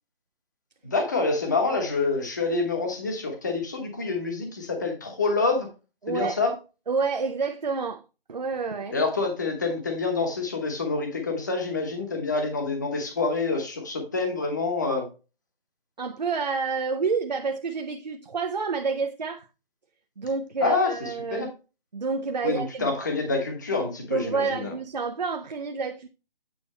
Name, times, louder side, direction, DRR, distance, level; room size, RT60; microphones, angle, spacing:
voice 1, 0.8-5.7 6.1-6.5 8.9-15.0 20.6-20.9 21.3-21.5 22.4-24.7, left 3 dB, 20° left, 1.1 m, -27 dB
voice 2, 6.0-6.4 6.9-8.0 8.3-9.0 16.0-19.5 20.2-21.5 21.9-22.9 24.1-26.1, right 5 dB, 45° right, 0.6 m, -29 dB
8.9 x 4.3 x 4.2 m
hypercardioid pair, 175°, 29 cm